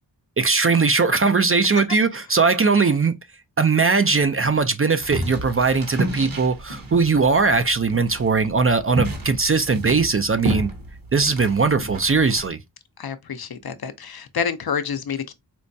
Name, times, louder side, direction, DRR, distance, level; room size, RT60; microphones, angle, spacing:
voice 1, 0.4-3.2 3.6-10.7 11.1-12.6, right 4 dB, 30° right, 0.4 m, -19 dB
sound 1, 5.0-12.5, right 1 dB, 50° right, 1.0 m, -31 dB
voice 2, 13.0-15.3, left 7 dB, 55° left, 0.6 m, -28 dB
4.4 x 2.1 x 2.6 m
cardioid pair, 45°, 44 cm